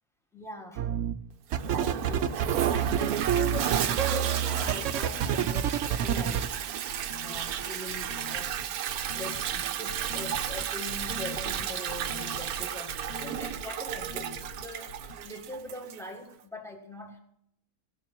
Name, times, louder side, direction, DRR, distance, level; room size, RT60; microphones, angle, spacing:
voice 1, 0.3-0.8 1.7-2.7 2.9-6.5 7.2-8.6 9.1-17.2, left 2 dB, ahead, 2 dB, 1.6 m, -42 dB
sound 1, 0.8-1.1 1.5-6.5, right 9 dB, 65° right, 0.9 m, -27 dB
Toilet flush, 1.5-16.1, right 10 dB, 90° right, 1.2 m, -33 dB
sound 2, 4.9-15.2, left 1 dB, 50° left, 1.0 m, -44 dB
16.5 x 7.1 x 6.1 m, 0.74 s
omnidirectional pair, 1.5 m